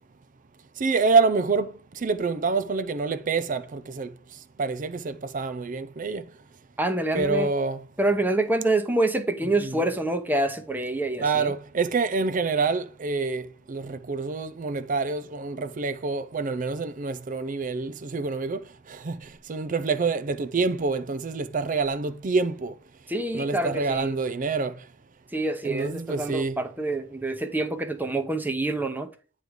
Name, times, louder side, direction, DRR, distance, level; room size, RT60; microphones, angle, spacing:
voice 1, 0.8-4.1 4.6-6.3 7.1-7.8 9.6-9.8 11.2-18.6 18.9-22.7 23.3-24.8 25.6-26.6, right 4 dB, 40° right, 0.5 m, -27 dB
voice 2, 6.8-7.5 8.0-11.5 23.1-24.1 25.3-29.1, right 2 dB, 10° right, 0.8 m, -26 dB
9.3 x 3.2 x 5.1 m
head